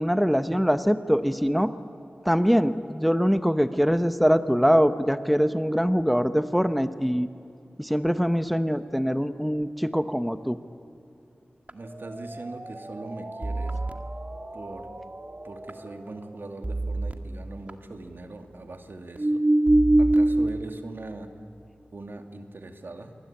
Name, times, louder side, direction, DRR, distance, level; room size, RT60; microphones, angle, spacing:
voice 1, 0.0-1.7 2.2-7.3 7.8-10.6, equal, ahead, 11 dB, 1.0 m, -23 dB
sound 1, 11.7-16.3 16.6-17.1 17.7-17.8 19.2-20.5, right 1 dB, 35° right, 1.9 m, -25 dB
voice 2, 11.7-13.8 14.5-14.9 15.4-19.4 20.0-21.3 21.9-23.1, right 2 dB, 65° right, 5 dB, 2.4 m, -41 dB
27.5 x 23.5 x 8.8 m, 2.8 s
cardioid pair, 45°, 4 cm